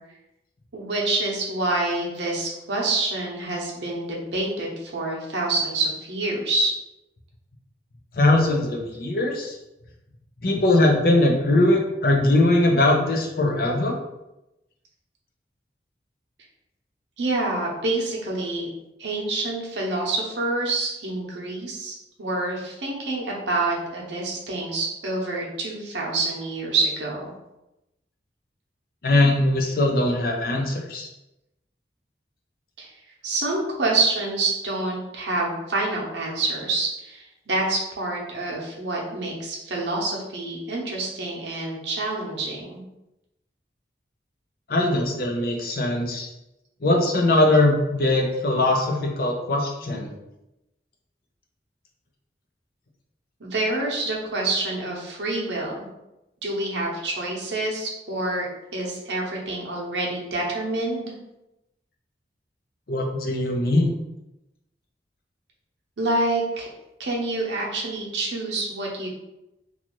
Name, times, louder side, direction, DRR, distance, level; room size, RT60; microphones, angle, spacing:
voice 1, 0.7-6.7 17.2-18.7 19.0-27.3 32.8-32.9 33.2-42.8 53.4-55.9 56.4-58.5 58.7-61.1 66.0-66.7 67.0-69.1, right 2 dB, 85° right, -2 dB, 0.7 m, -27 dB
voice 2, 8.1-9.6 10.4-13.9 29.0-31.1 44.7-46.3 46.8-50.1 62.9-63.9, left 2 dB, 55° left, 0 dB, 0.5 m, -21 dB
2.6 x 2.4 x 3.0 m, 0.93 s
head